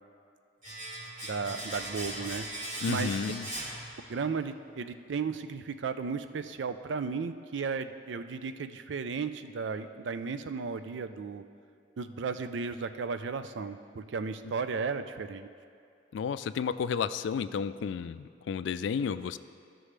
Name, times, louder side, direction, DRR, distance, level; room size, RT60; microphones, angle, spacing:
Domestic sounds home sounds, 0.6-4.4 4.7-4.8, right 1 dB, 45° right, 1.5 m, -39 dB
voice 1, 1.2-2.5 2.9-3.1 4.1-11.4 12.0-15.5, right 5 dB, 80° right, 10 dB, 0.4 m, -34 dB
voice 2, 2.8-3.5 16.1-19.4, left 6 dB, 80° left, 14 dB, 0.3 m, -32 dB
14.5 x 6.1 x 3.3 m, 2.4 s
head